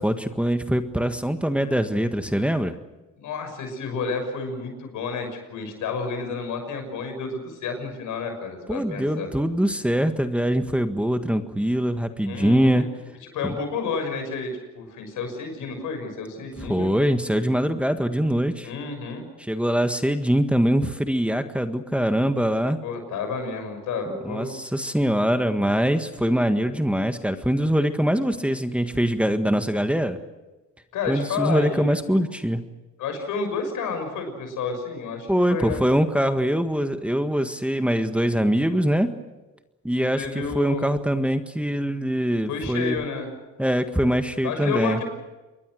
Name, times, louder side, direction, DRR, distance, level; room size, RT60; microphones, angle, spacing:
voice 1, 0.0-2.7 8.7-12.8 13.4-13.5 16.7-18.7 19.5-22.8 24.2-30.2 31.1-32.6 35.3-39.1 39.8-40.3 40.5-43.0 43.6-45.0, equal, 5° right, 7 dB, 1.6 m, -23 dB
voice 2, 3.2-9.3 12.3-12.9 13.3-16.9 18.6-19.2 22.8-24.5 30.9-31.9 33.0-35.8 40.0-40.9 42.5-43.3 44.4-45.0, left 4 dB, 85° left, 6 dB, 6.5 m, -30 dB
28.0 x 22.0 x 6.5 m, 1.1 s
cardioid pair, 90°, 30 cm